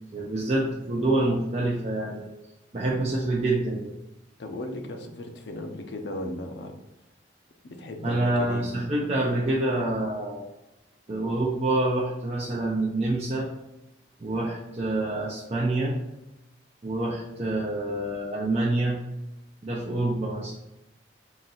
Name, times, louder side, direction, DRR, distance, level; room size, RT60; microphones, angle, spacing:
voice 1, 0.1-2.3 2.7-3.9 8.0-10.5 11.1-13.5 14.2-16.0 16.8-19.0 19.6-20.5, right 2 dB, 35° right, -5 dB, 0.6 m, -27 dB
voice 2, 4.4-6.7 7.6-8.7, left 1 dB, 65° left, 4 dB, 0.6 m, -36 dB
4.0 x 2.5 x 4.0 m, 0.91 s
head